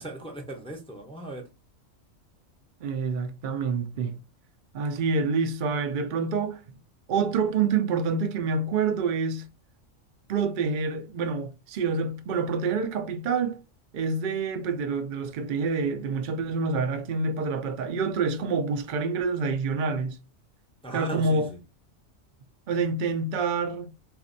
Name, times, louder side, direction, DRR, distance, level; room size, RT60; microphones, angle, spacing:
voice 1, 0.0-1.5 20.8-21.6, right 2 dB, 5° left, 0.5 m, -37 dB
voice 2, 2.8-4.2 4.7-6.6 7.1-9.5 10.3-13.6 13.9-20.2 20.9-21.5 22.7-23.9, right 4 dB, 60° right, 0.5 m, -27 dB
4.1 x 2.5 x 2.5 m
omnidirectional pair, 1.4 m